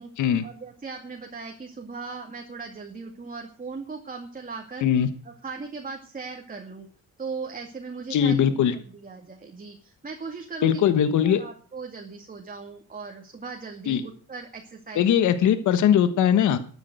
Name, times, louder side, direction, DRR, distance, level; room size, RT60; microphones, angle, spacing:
voice 1, 0.4-4.9 5.2-6.9 7.2-15.4, right 4 dB, 30° right, 2 dB, 2.3 m, -38 dB
voice 2, 8.1-8.7 10.6-11.4 13.9-14.0 15.0-16.6, left 9 dB, 75° left, 11 dB, 1.3 m, -20 dB
12.5 x 9.8 x 7.9 m, 0.43 s
cardioid pair, 90°, 30 cm